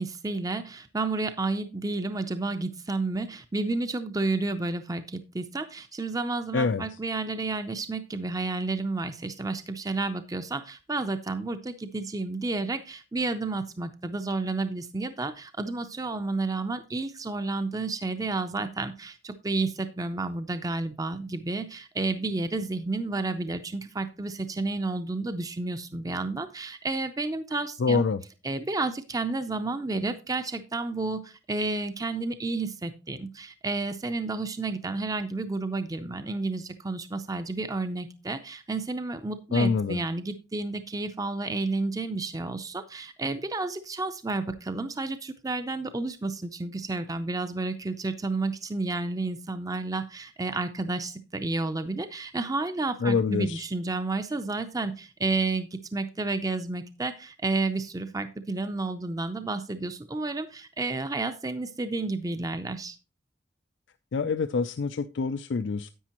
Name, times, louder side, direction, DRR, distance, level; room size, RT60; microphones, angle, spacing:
voice 1, 0.0-28.0 28.4-63.0, right 3 dB, 20° right, 10 dB, 0.5 m, -31 dB
voice 2, 6.5-6.8 27.8-28.2 39.5-40.0 53.0-53.6 64.1-65.9, left 4 dB, 85° left, 11 dB, 0.4 m, -26 dB
10.0 x 8.3 x 2.9 m, 0.31 s
head